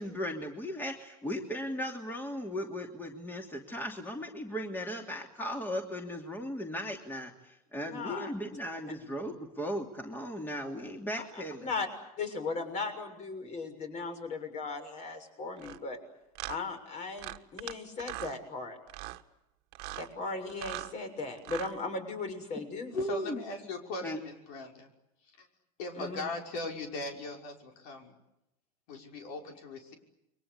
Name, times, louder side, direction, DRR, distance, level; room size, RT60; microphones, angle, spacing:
voice 1, 0.0-11.7 22.9-23.4 24.0-24.2, equal, 10° left, 3 dB, 2.8 m, -37 dB
voice 2, 7.8-8.3 11.6-11.9 12.2-16.0 16.5-18.8 20.0-22.9 26.0-26.3, left 3 dB, 40° left, 7 dB, 6.7 m, -37 dB
sound 1, 15.6-15.8 16.4-16.6 17.2-17.7 18.0-18.4 18.9-19.2 19.7-20.1 20.5-20.9 21.4-21.7, right 19 dB, 55° right, 1.6 m, -40 dB
voice 3, 22.9-24.9 25.4-25.5 25.8-28.1 28.9-29.9, left 2 dB, 75° left, 3 dB, 5.8 m, -39 dB
29.5 x 23.5 x 8.2 m, 0.88 s
supercardioid pair, 135°, 19 cm